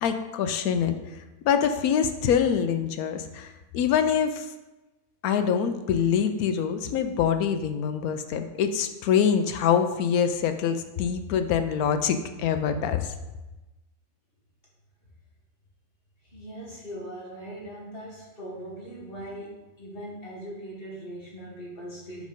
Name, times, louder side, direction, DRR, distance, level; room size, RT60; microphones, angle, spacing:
voice 1, 0.0-1.0 1.4-4.5 5.2-13.1, left 7 dB, 75° left, 8 dB, 1.1 m, -25 dB
voice 2, 16.2-22.3, right 1 dB, 40° left, -5 dB, 1.8 m, -40 dB
5.2 x 5.0 x 5.2 m, 1.1 s
omnidirectional pair, 1.6 m